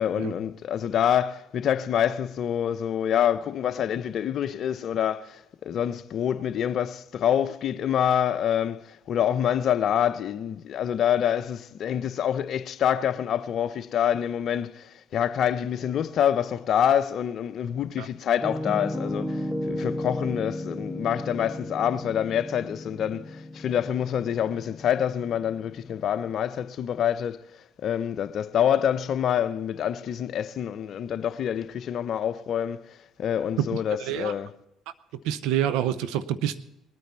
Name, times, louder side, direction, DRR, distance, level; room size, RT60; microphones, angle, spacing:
voice 1, 0.0-27.4 27.8-34.5, left 9 dB, 55° left, 0.7 m, -26 dB
Piano, 18.4-26.3, left 1 dB, 5° left, 0.7 m, -34 dB
voice 2, 35.2-36.6, right 11 dB, 75° right, 0.7 m, -26 dB
20.0 x 9.3 x 4.3 m
supercardioid pair, 70°, 0 cm